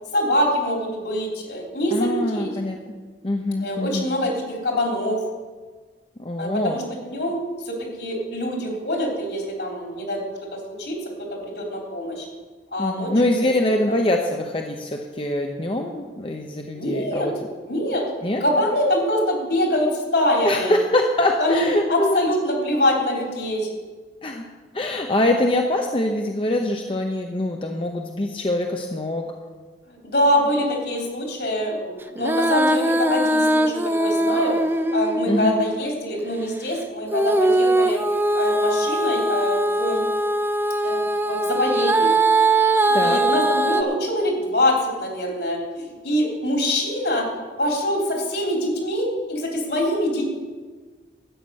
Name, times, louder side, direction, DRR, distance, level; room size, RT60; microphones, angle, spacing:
voice 1, 0.1-2.5 3.6-5.2 6.4-7.4 7.6-11.0 11.3-12.3 12.7-13.1 16.7-17.3 17.6-18.0 18.4-20.7 21.4-23.7 29.9-38.0 38.3-40.0 40.8-41.0 41.3-42.1 42.8-47.2 47.6-50.3, left 1 dB, 70° left, 0 dB, 3.4 m, -24 dB
voice 2, 1.9-2.8 3.2-4.1 6.2-6.8 12.8-17.3 18.2-18.4 20.4-22.3 24.2-24.4 24.7-29.2 35.3-35.6 42.9-43.2, left 1 dB, 30° left, 2 dB, 0.8 m, -23 dB
Female singing, 32.2-35.9 37.1-43.8, right 2 dB, 10° right, 0.5 m, -21 dB
12.5 x 9.0 x 6.4 m, 1.4 s
head